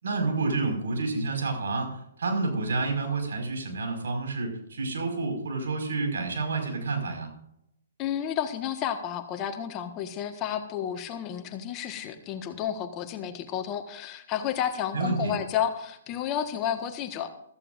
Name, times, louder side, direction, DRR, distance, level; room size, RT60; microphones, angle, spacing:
voice 1, 0.0-7.3 14.9-15.4, right 3 dB, 70° right, 3 dB, 5.3 m, -29 dB
voice 2, 8.0-17.3, left 9 dB, 30° left, 7 dB, 1.5 m, -31 dB
15.5 x 14.5 x 2.6 m, 0.75 s
hypercardioid pair, 130°, 0 cm